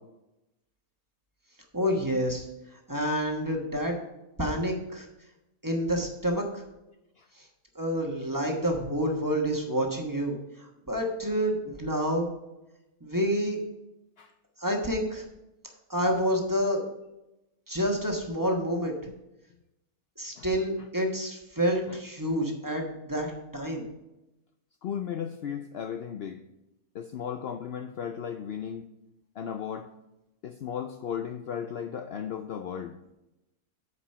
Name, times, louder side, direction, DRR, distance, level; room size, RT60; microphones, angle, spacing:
voice 1, 1.7-2.5 2.9-4.0 4.4-5.1 5.6-6.4 7.7-12.3 13.0-13.6 14.6-15.2 15.9-16.8 17.7-18.9 20.2-23.9, equal, 15° right, 1 dB, 1.1 m, -28 dB
voice 2, 24.8-26.4 26.9-28.9 29.4-29.9 30.4-33.0, left 8 dB, 80° left, 7 dB, 0.5 m, -35 dB
8.2 x 5.0 x 5.6 m, 0.94 s
omnidirectional pair, 1.6 m